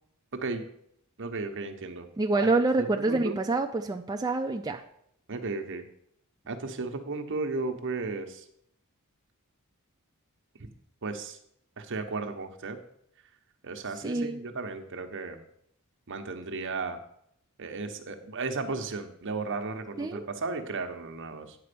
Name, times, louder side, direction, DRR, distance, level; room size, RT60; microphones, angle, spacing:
voice 1, 0.3-0.6 1.2-2.1 2.8-3.4 5.3-5.8 6.5-8.4 10.6-10.7 11.0-11.4 11.8-12.8 13.6-15.4 16.1-17.0 17.6-21.6, right 3 dB, 60° right, 5 dB, 1.0 m, -34 dB
voice 2, 2.2-4.8 13.9-14.4 20.0-20.2, right 3 dB, 20° right, 4 dB, 0.4 m, -27 dB
9.5 x 4.3 x 6.8 m, 0.71 s
head